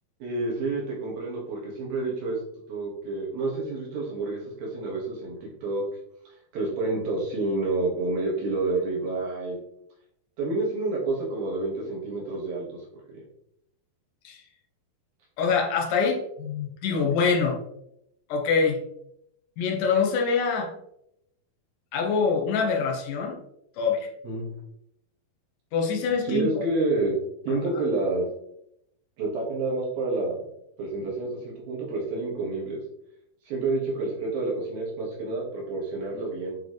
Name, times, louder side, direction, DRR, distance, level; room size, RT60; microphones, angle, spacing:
voice 1, 0.2-2.4 2.7-5.8 6.3-9.6 10.4-13.2 24.2-24.5 26.2-27.2 27.4-28.3 29.2-30.5 30.8-32.8 33.5-36.6, right 3 dB, 65° right, -4 dB, 3.4 m, -29 dB
voice 2, 15.4-17.6 18.3-18.8 19.6-20.7 21.9-23.4 23.8-24.1 25.7-26.5 27.5-27.6, left 5 dB, 65° left, 1 dB, 2.3 m, -25 dB
8.7 x 4.7 x 3.1 m, 0.78 s
omnidirectional pair, 4.7 m